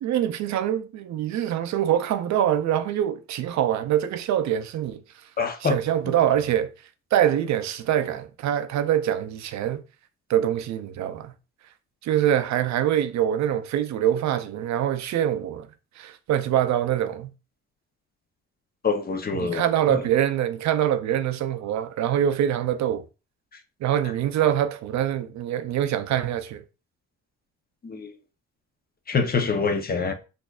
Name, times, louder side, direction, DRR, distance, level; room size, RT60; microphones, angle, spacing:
voice 1, 0.0-5.0 5.6-6.7 7.1-9.8 10.3-11.3 12.0-15.7 16.0-17.3 19.3-23.0 23.8-26.6, right 10 dB, 65° right, 0.5 m, -24 dB
voice 2, 5.4-5.8 18.8-20.0 27.8-28.1 29.1-30.1, left 5 dB, 30° left, 0.6 m, -25 dB
4.1 x 2.6 x 2.3 m
cardioid pair, 90°, 30 cm